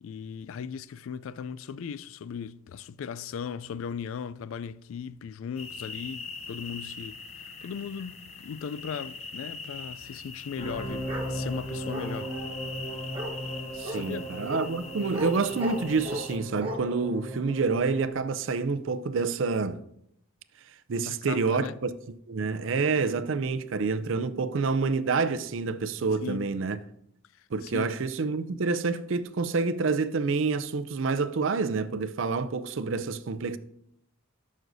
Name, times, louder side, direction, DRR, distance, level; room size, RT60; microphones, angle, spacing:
voice 1, 0.0-12.3 13.9-14.3 21.0-21.7 26.2-26.6 27.6-27.9, left 7 dB, 75° left, 0.3 m, -38 dB
sound 1, 5.6-16.4, left 4 dB, 30° left, 0.6 m, -42 dB
sound 2, 10.5-18.2, right 1 dB, 50° left, 2.9 m, -37 dB
Bark, 11.1-11.3 11.9-12.5 13.1-13.3 13.8-14.0 14.5-14.7 15.1-15.3 15.6-16.3 16.6-16.8, right 1 dB, 25° right, 1.3 m, -34 dB
voice 2, 13.8-19.8 20.9-21.9 22.3-26.8 27.5-33.6, right 4 dB, 65° right, 0.5 m, -28 dB
12.0 x 6.3 x 2.6 m
head